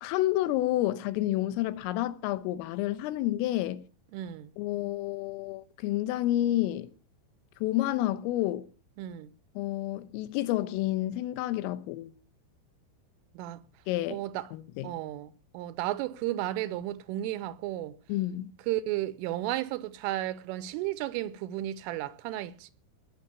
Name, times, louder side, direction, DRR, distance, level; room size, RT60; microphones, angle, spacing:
voice 1, 0.0-3.9 4.6-6.9 7.6-8.7 9.6-12.1 13.9-14.2 14.5-14.9 18.1-18.5, left 15 dB, 85° left, 3.5 m, -29 dB
voice 2, 4.1-4.5 9.0-9.3 13.3-13.6 14.1-14.5 14.8-18.0 18.7-22.7, right 14 dB, 80° right, 3.3 m, -33 dB
19.5 x 7.1 x 7.0 m
omnidirectional pair, 5.8 m